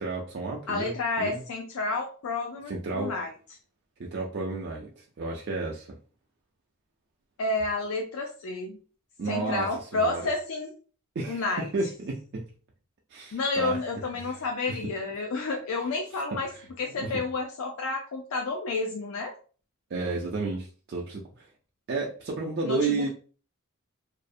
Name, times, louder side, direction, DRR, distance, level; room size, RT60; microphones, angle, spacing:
voice 1, 0.0-1.4 2.7-3.2 4.0-6.0 9.2-10.2 11.2-11.4 11.7-12.4 13.1-13.8 14.1-14.4 14.7-14.8 16.5-16.6 17.0-17.1 19.9-21.5 21.9-23.1, right 3 dB, 50° right, -1 dB, 0.4 m, -32 dB
voice 2, 0.7-3.3 7.4-8.8 9.3-10.7 11.3-11.7 13.3-16.5 16.8-19.3 22.7-23.1, left 3 dB, 75° left, 1 dB, 0.4 m, -30 dB
2.4 x 2.0 x 2.5 m, 0.39 s
head